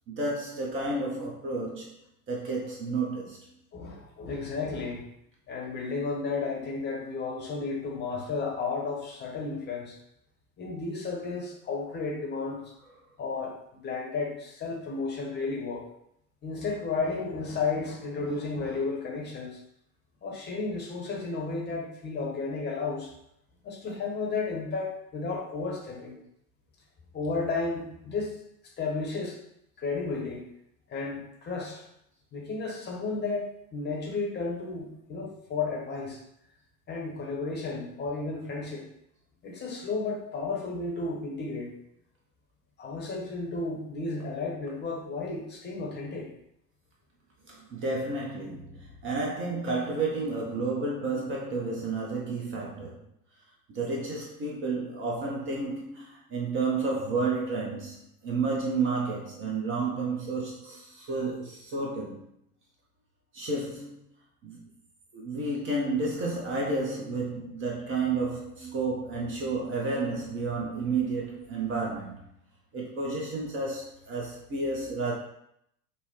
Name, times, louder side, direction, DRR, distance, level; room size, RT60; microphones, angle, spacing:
voice 1, 0.1-1.9 2.3-3.5 47.5-53.0 53.7-62.2 63.3-64.0 64.4-64.7 65.1-72.2 72.7-75.1, right 3 dB, 25° right, -2 dB, 0.7 m, -31 dB
voice 2, 3.7-5.0 5.5-10.0 10.6-12.7 13.2-15.9 16.4-19.6 20.2-23.1 23.6-26.2 27.1-28.4 28.8-29.4 29.8-30.4 30.9-31.8 32.3-36.2 36.9-38.9 39.4-41.7 42.8-46.3, left 4 dB, 20° left, -1 dB, 0.9 m, -33 dB
5.4 x 2.1 x 3.0 m, 0.75 s
figure-of-eight pair, 85°, 47 cm